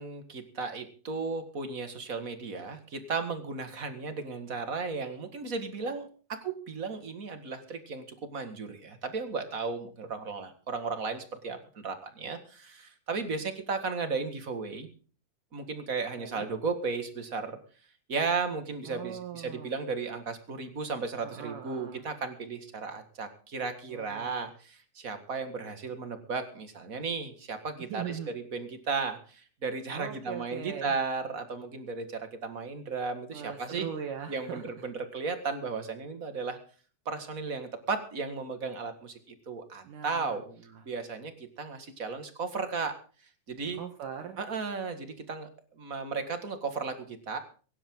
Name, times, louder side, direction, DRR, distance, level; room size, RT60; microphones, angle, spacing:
voice 1, 0.0-14.9 15.5-17.6 18.1-33.9 34.3-36.6 37.0-40.4 40.8-42.9 43.5-43.8 44.4-45.5 45.8-47.4, right 4 dB, 35° right, 8 dB, 1.6 m, -35 dB
voice 2, 16.2-16.5 18.8-19.7 21.2-22.0 23.9-24.5 27.8-28.3 29.9-30.9 33.3-34.9 39.8-40.8 43.7-44.4, right 8 dB, 70° right, 5 dB, 2.7 m, -40 dB
24.0 x 11.0 x 3.8 m, 0.39 s
omnidirectional pair, 4.0 m